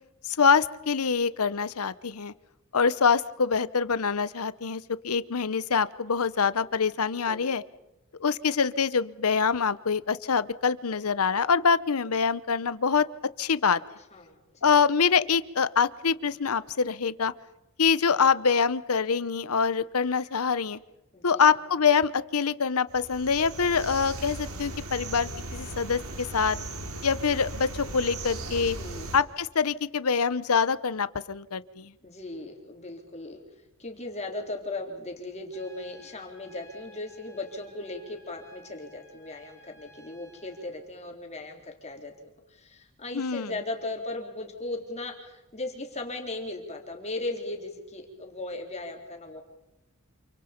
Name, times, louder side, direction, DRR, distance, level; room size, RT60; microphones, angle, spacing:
voice 1, 0.3-2.3 2.7-7.6 8.2-13.1 13.4-13.8 14.6-17.3 17.8-20.8 21.2-26.6 27.0-28.8 29.1-31.9 43.1-43.5, left 6 dB, 85° left, 16 dB, 0.8 m, -25 dB
voice 2, 21.1-21.5 28.8-29.1 32.0-33.4 33.8-49.4, left 2 dB, 30° left, 1 dB, 3.8 m, -37 dB
sound 1, 22.9-29.2, right 2 dB, 85° right, 2.6 m, -38 dB
Trumpet, 35.5-40.7, equal, 15° left, 3.4 m, -56 dB
28.0 x 26.5 x 5.2 m, 0.95 s
head